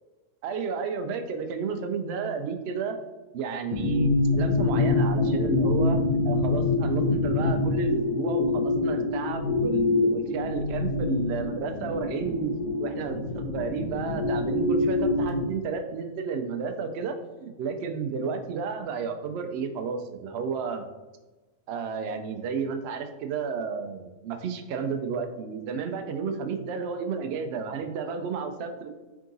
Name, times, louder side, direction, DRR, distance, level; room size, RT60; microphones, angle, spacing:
voice 1, 0.4-3.0 3.3-12.5 12.8-17.2 17.4-20.8 21.7-28.9, right 6 dB, 75° right, 6 dB, 0.6 m, -32 dB
sound 1, 3.7-15.4, left 2 dB, 80° left, 1.2 m, -25 dB
3.7 x 3.6 x 3.8 m, 1.2 s
omnidirectional pair, 1.6 m